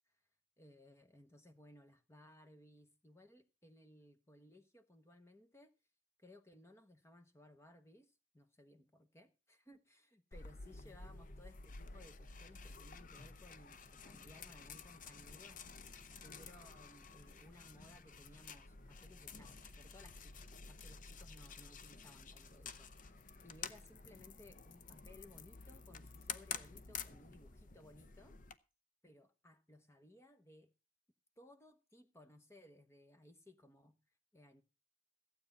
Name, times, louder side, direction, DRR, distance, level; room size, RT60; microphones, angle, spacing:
voice 1, 0.6-5.7 6.2-15.7 16.2-28.4 29.0-30.7 31.4-34.0 34.3-34.6, left 1 dB, 15° left, 1.0 m, -61 dB
sound 1, 10.3-28.6, left 5 dB, 45° left, 0.7 m, -51 dB
15.0 x 8.4 x 5.5 m
head